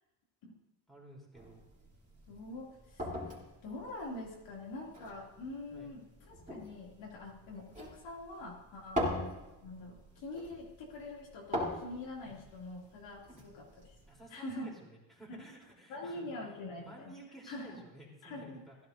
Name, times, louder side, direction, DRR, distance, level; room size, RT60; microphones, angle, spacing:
voice 1, 0.9-1.6 5.7-5.9 12.2-12.4 13.3-13.4 14.1-18.8, right 2 dB, ahead, -4 dB, 3.6 m, -53 dB
sound 1, 1.3-14.2, left 1 dB, 15° right, 3.5 m, -43 dB
voice 2, 2.3-3.1 3.6-13.9 14.3-14.7 15.3-15.4 15.9-17.1 17.5-17.8 18.2-18.6, left 2 dB, 65° left, -3 dB, 2.8 m, -44 dB
16.0 x 11.5 x 2.7 m, 1.0 s
cardioid pair, 105°, 49 cm